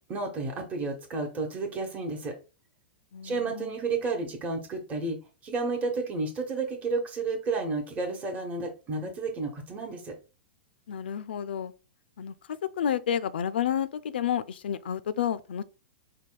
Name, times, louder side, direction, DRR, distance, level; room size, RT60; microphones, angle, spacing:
voice 1, 0.1-2.3 3.2-5.2 5.4-10.1, right 3 dB, 25° right, 1.1 m, -31 dB
voice 2, 3.1-3.8 10.9-11.7 12.2-15.6, left 9 dB, 65° left, 0.4 m, -30 dB
4.7 x 2.2 x 3.9 m
figure-of-eight pair, 105°, 6 cm